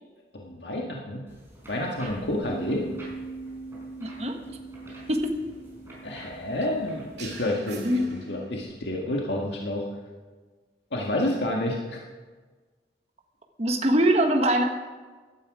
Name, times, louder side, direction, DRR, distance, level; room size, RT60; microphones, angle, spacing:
voice 1, 0.3-1.2 1.7-2.8 6.0-9.9 10.9-12.0, left 1 dB, 80° left, -1 dB, 1.8 m, -29 dB
sound 1, 1.3-7.5, equal, 15° right, 5.1 m, -49 dB
Bass guitar, 2.4-8.6, right 4 dB, 20° left, 5.6 m, -42 dB
voice 2, 4.0-4.3 5.1-5.3 7.8-8.1 13.6-14.6, right 1 dB, 35° right, 3 dB, 1.3 m, -22 dB
sound 2, 7.2-8.9, right 1 dB, 75° right, 2.3 m, -41 dB
16.0 x 12.0 x 4.9 m, 1.4 s
head